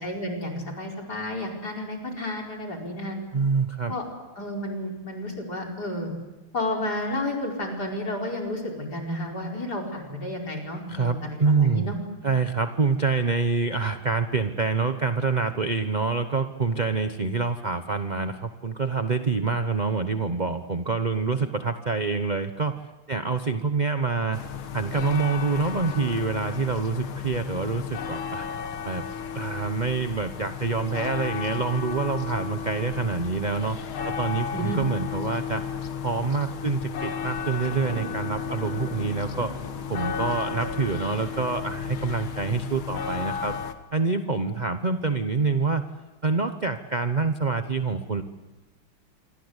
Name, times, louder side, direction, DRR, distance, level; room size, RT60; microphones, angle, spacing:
voice 1, 0.0-3.2 3.9-4.1 4.4-6.1 6.5-12.0 34.5-34.8, left 1 dB, 45° left, 0 dB, 5.5 m, -31 dB
voice 2, 3.3-3.9 10.9-11.9 12.2-22.8 23.1-24.4 24.7-28.5 28.8-29.0 29.3-33.8 34.0-35.6 36.0-39.6 39.9-43.6 43.9-45.8 46.2-48.2, right 4 dB, 35° right, 8 dB, 0.7 m, -26 dB
sound 1, 24.3-43.7, left 7 dB, 75° left, 2.2 m, -33 dB
Thunder, 37.7-42.2, right 3 dB, 55° right, 4.6 m, -41 dB
26.5 x 24.5 x 8.2 m, 1.1 s
omnidirectional pair, 2.3 m